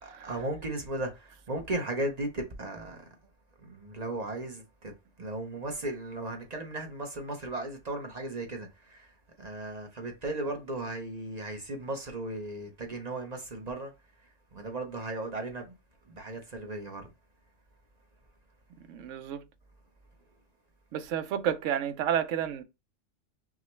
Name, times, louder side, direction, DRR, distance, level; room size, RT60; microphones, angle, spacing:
voice 1, 0.0-3.1 3.6-4.9 5.2-13.9 14.2-15.7 16.0-17.1, right 2 dB, 40° right, 0.8 m, -36 dB
voice 2, 18.9-19.4 20.9-22.6, right 9 dB, 80° right, 1.0 m, -31 dB
5.8 x 2.2 x 3.1 m
omnidirectional pair, 1.3 m